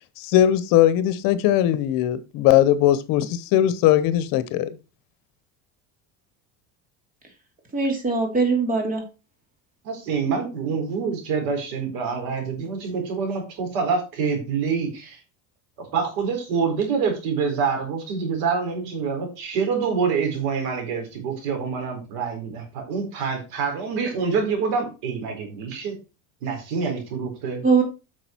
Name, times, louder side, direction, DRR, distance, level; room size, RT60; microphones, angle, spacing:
voice 1, 0.2-4.7, left 12 dB, 65° left, 1.0 m, -19 dB
voice 2, 7.7-9.0 27.6-27.8, right 4 dB, 20° right, 2.8 m, -21 dB
voice 3, 9.8-15.2 15.9-26.0 26.4-27.6, right 5 dB, 75° right, 4.4 m, -26 dB
8.8 x 6.2 x 4.5 m
cardioid pair, 155°, 36 cm